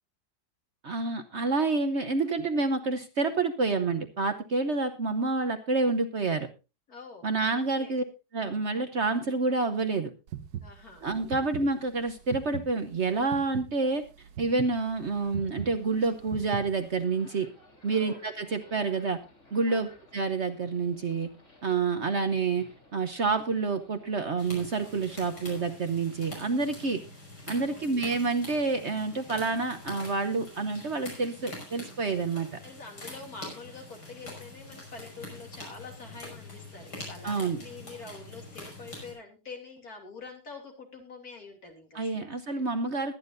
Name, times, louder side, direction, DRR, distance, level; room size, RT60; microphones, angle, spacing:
voice 1, 0.8-6.5 7.2-8.0 8.3-10.1 11.0-14.0 14.4-17.5 17.8-19.2 19.5-21.3 21.6-27.0 27.5-32.6 37.2-37.6 41.9-43.1, right 3 dB, 50° right, 8 dB, 1.1 m, -28 dB
voice 2, 6.9-8.0 10.6-11.1 11.4-11.5 17.9-18.2 19.7-19.8 27.6-27.9 32.0-32.2 32.6-42.2 42.5-42.6, left 4 dB, 60° left, 3 dB, 3.3 m, -46 dB
sound 1, 10.3-17.0, right 10 dB, 70° right, 1.4 m, -40 dB
sound 2, 14.6-25.7, left 1 dB, 45° left, 3.7 m, -57 dB
sound 3, 24.4-39.1, left 1 dB, 80° left, 6.3 m, -45 dB
21.5 x 9.9 x 2.6 m, 0.28 s
omnidirectional pair, 1.8 m